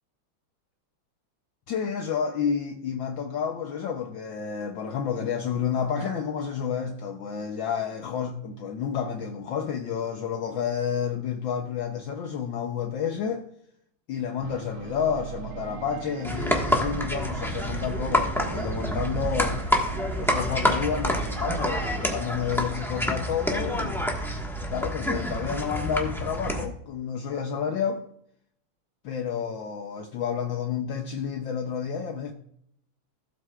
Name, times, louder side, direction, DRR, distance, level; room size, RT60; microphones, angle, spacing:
voice 1, 1.7-13.4 14.1-19.6 20.2-24.1 24.6-28.0 29.0-32.3, left 7 dB, 70° left, 1.3 m, -30 dB
sound 1, 14.4-23.5, right 9 dB, 85° right, 1.6 m, -40 dB
sound 2, 16.2-26.7, equal, ahead, 0.9 m, -28 dB
16.0 x 7.8 x 2.4 m
omnidirectional pair, 2.4 m